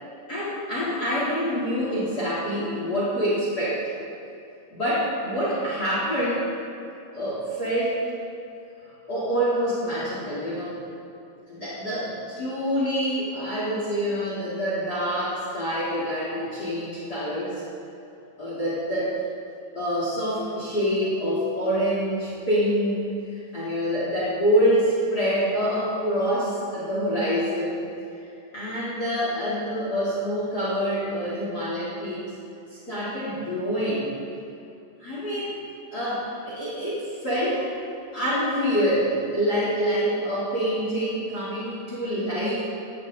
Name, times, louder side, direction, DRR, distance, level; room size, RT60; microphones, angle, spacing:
voice 1, 0.3-3.8 4.7-6.5 7.1-8.0 9.1-10.8 11.5-17.6 18.4-19.1 19.7-27.8 28.5-32.3 32.7-34.1 35.0-35.5 35.9-37.7 38.1-42.6, equal, 25° left, -8 dB, 3.9 m, -26 dB
18.0 x 16.0 x 4.1 m, 2.7 s
omnidirectional pair, 4.0 m